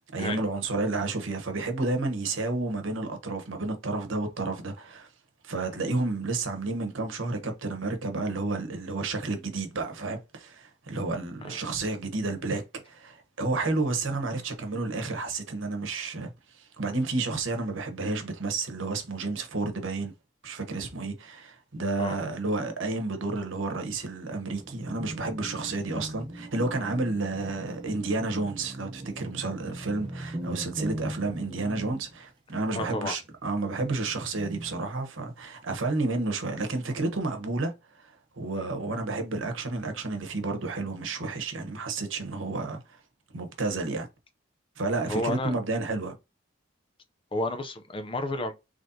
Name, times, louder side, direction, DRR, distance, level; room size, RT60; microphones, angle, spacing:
voice 1, 0.0-5.1 5.4-20.1 20.4-37.7 38.0-43.0 43.3-44.1 44.8-46.1, right 3 dB, 75° right, 1.1 m, -31 dB
sound 1, 24.6-32.2 33.2-33.4 33.8-34.8, right 1 dB, 25° right, 0.7 m, -40 dB
voice 2, 32.7-33.1 38.5-38.7 45.1-45.5 47.3-48.5, left 2 dB, 25° left, 0.5 m, -31 dB
4.0 x 3.1 x 2.7 m
head